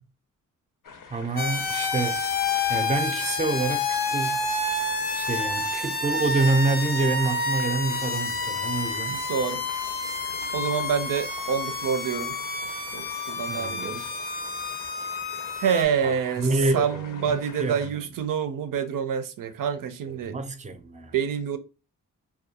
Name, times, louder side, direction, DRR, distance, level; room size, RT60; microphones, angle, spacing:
sound 1, 0.8-17.9, left 5 dB, 75° left, 0.5 m, -45 dB
voice 1, 1.1-2.2 2.7-4.4 5.1-9.2 13.5-14.1 16.0-17.3 17.6-17.8 20.3-21.1, right 3 dB, 25° right, 0.4 m, -27 dB
sound 2, 1.4-15.8, left 3 dB, 30° left, 0.5 m, -29 dB
voice 2, 9.1-9.6 10.5-12.4 12.9-14.1 15.6-16.5 16.7-20.4 21.1-21.6, right 7 dB, 85° right, 0.5 m, -27 dB
2.4 x 2.2 x 2.6 m
cardioid pair, 60°, 32 cm